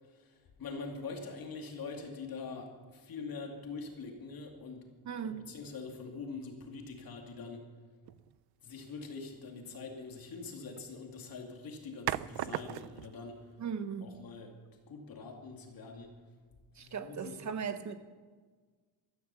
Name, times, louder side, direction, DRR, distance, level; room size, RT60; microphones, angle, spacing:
voice 1, 0.0-4.9 5.2-7.7 8.6-13.6 14.0-14.5 14.9-16.1 16.8-17.4, left 4 dB, 55° left, 2.6 m, -44 dB
voice 2, 5.0-5.5 13.6-14.2 16.8-17.9, right 6 dB, 40° right, 1.2 m, -38 dB
sound 1, 8.1-8.4 10.5-10.9 12.1-13.2, right 14 dB, 65° right, 0.5 m, -37 dB
15.0 x 13.5 x 7.0 m
cardioid pair, 160°, 42 cm